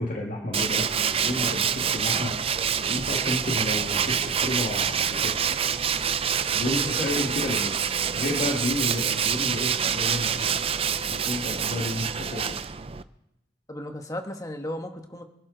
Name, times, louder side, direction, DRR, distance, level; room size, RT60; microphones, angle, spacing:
voice 1, 0.0-2.4 2.8-5.4 6.5-7.9 8.1-10.5 11.1-12.6, left 1 dB, 45° left, -1 dB, 1.8 m, -31 dB
Tools, 0.5-13.0, right 7 dB, 30° right, 0.4 m, -26 dB
sound 1, 5.1-12.3, right 2 dB, 65° right, 4.5 m, -45 dB
voice 2, 6.6-7.1 13.7-15.2, left 1 dB, 20° left, 5 dB, 1.3 m, -35 dB
24.5 x 12.0 x 3.9 m, 0.84 s
head